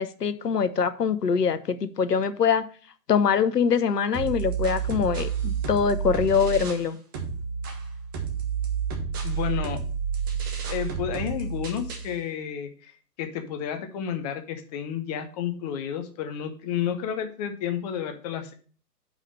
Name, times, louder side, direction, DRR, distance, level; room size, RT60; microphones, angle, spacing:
voice 1, 0.0-2.7 3.1-7.0, left 6 dB, 70° left, 12 dB, 0.9 m, -23 dB
sound 1, 4.1-6.9 7.1-12.1, right 7 dB, 15° right, 0.5 m, -30 dB
voice 2, 9.2-9.8 10.7-12.9 13.2-18.5, left 9 dB, 25° left, 7 dB, 0.8 m, -31 dB
5.5 x 5.0 x 6.1 m, 0.42 s
figure-of-eight pair, 115°, 49 cm